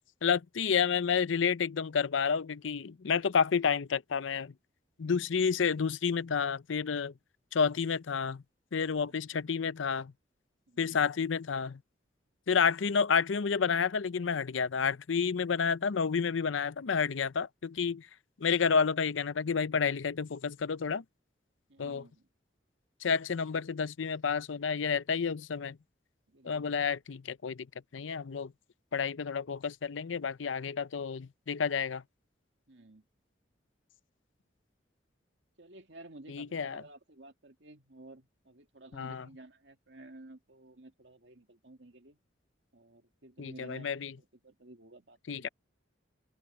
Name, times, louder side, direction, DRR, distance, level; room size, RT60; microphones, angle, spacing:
voice 1, 0.2-4.5 5.0-7.1 7.5-8.4 8.7-10.1 10.8-11.8 12.5-18.1 18.4-21.0 21.8-22.0 23.0-25.8 26.4-27.7 27.9-28.5 28.9-32.0 36.3-36.8 38.9-39.2 43.4-44.1 45.3-45.5, left 6 dB, 85° left, 0.6 m, -30 dB
voice 2, 9.1-9.5 10.7-11.1 21.7-22.3 26.3-26.8 32.7-33.0 35.6-42.2 42.7-45.5, right 2 dB, 65° right, 2.4 m, -54 dB
open air
head